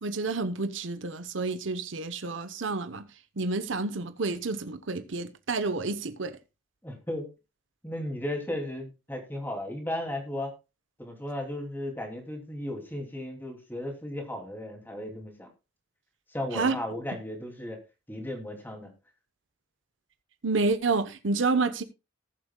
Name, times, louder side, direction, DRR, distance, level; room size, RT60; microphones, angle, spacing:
voice 1, 0.0-3.0 3.4-6.4 16.5-16.8 20.4-21.8, right 3 dB, 80° right, 1.0 m, -29 dB
voice 2, 6.8-7.3 7.8-10.5 11.0-15.5 16.3-17.8 18.1-18.9, left 1 dB, 10° left, 2.8 m, -35 dB
19.5 x 7.4 x 2.3 m
head